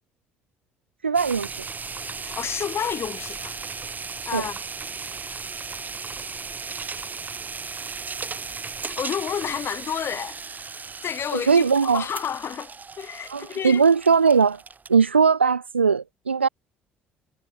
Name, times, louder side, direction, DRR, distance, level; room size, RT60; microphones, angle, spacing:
voice 1, 1.0-1.5 4.3-4.5 11.3-12.1 13.3-14.6 14.9-16.5, right 5 dB, 85° right, 0.4 m, -19 dB
sound 1, 1.1-15.1, right 5 dB, 30° right, 3.8 m, -36 dB
voice 2, 2.2-3.6 4.3-4.6 8.9-10.4 11.0-13.8, left 8 dB, 45° left, 4.0 m, -30 dB
figure-of-eight pair, 50°, 6 cm